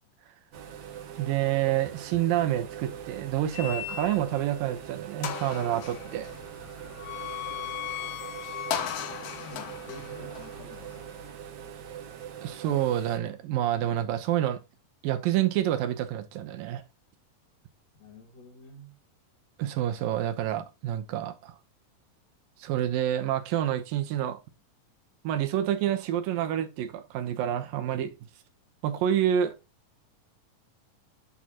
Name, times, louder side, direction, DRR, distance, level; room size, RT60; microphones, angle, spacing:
sound 1, 0.5-13.2, right 9 dB, 65° right, 2.3 m, -42 dB
voice 1, 1.2-6.3 12.4-14.6 15.0-16.8 19.6-21.6 22.6-24.4 25.2-28.2 28.8-29.6, right 11 dB, 80° right, 2.7 m, -28 dB
sound 2, 3.5-4.4 4.8-4.9 5.2-11.3, left 10 dB, 70° left, 1.5 m, -37 dB
voice 2, 9.1-11.0 18.0-19.0, left 2 dB, 50° left, 3.3 m, -48 dB
10.0 x 6.5 x 2.9 m
omnidirectional pair, 4.0 m